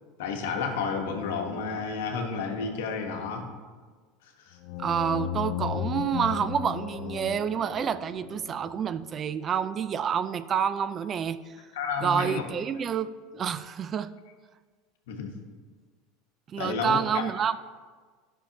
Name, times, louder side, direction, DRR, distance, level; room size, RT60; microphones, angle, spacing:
voice 1, 0.2-3.5 4.5-4.6 11.7-12.4 15.1-15.3 16.6-17.2, left 5 dB, 80° left, 3 dB, 1.1 m, -31 dB
sound 1, 4.6-9.2, left 11 dB, 65° left, 0.4 m, -35 dB
voice 2, 4.8-11.6 12.0-14.1 16.5-17.6, right 7 dB, 35° right, 15 dB, 0.3 m, -28 dB
11.5 x 6.2 x 2.8 m, 1.5 s
supercardioid pair, 105°, 0 cm